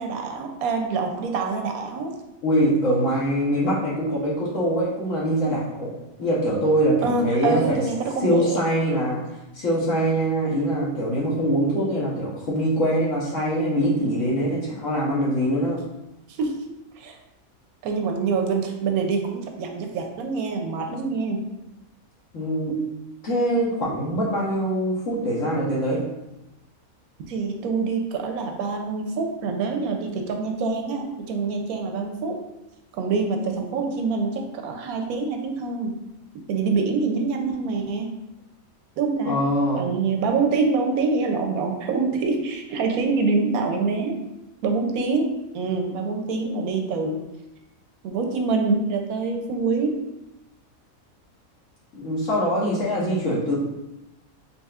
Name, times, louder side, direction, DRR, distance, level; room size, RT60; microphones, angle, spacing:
voice 1, 0.0-2.1 7.0-8.6 16.3-16.6 17.0-17.2 17.8-21.4 27.3-32.4 32.9-36.0 36.5-38.2 39.0-39.4 39.8-44.2 44.6-47.2 48.0-50.0, right 4 dB, 85° right, 3 dB, 1.1 m, -25 dB
voice 2, 2.4-5.9 6.2-7.8 8.2-9.2 9.5-15.8 22.3-22.8 23.2-26.0 39.2-39.8 51.9-53.5, equal, 65° left, -6 dB, 1.2 m, -23 dB
4.1 x 3.4 x 2.4 m, 0.92 s
omnidirectional pair, 1.5 m